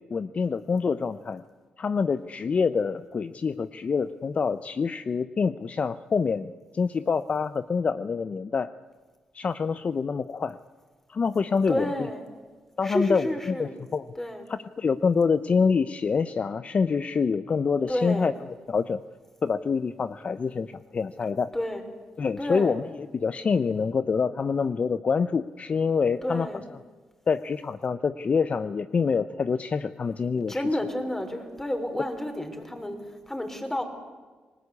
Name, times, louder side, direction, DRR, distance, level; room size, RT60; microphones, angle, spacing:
voice 1, 0.1-1.4 1.8-8.7 9.3-10.6 11.1-11.9 12.8-14.1 14.5-18.3 18.7-19.0 19.4-21.5 22.2-22.8 23.1-26.5 27.3-30.6, left 5 dB, 45° left, 13 dB, 0.7 m, -26 dB
voice 2, 11.7-12.2 12.8-13.7 14.2-14.4 17.9-18.3 21.5-21.8 22.4-22.8 26.2-26.6 30.5-33.8, left 1 dB, 10° left, 5 dB, 5.2 m, -30 dB
29.0 x 20.0 x 8.4 m, 1.4 s
cardioid pair, 65°, 3 cm